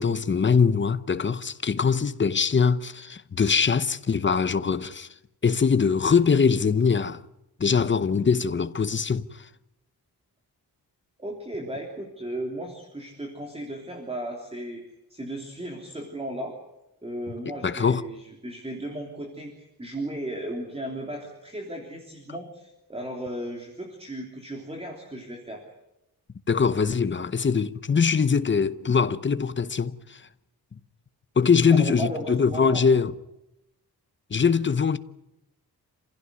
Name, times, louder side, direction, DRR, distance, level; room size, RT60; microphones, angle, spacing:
voice 1, 0.0-5.1 5.4-7.2 7.6-9.5 17.6-18.0 26.5-30.2 31.4-33.1 34.3-35.0, left 5 dB, 30° left, 0.8 m, -22 dB
voice 2, 11.2-14.8 15.1-16.5 17.0-25.6 31.7-32.8, right 1 dB, 15° right, 3.4 m, -35 dB
28.0 x 16.0 x 9.6 m
wide cardioid pair, 165°, 38 cm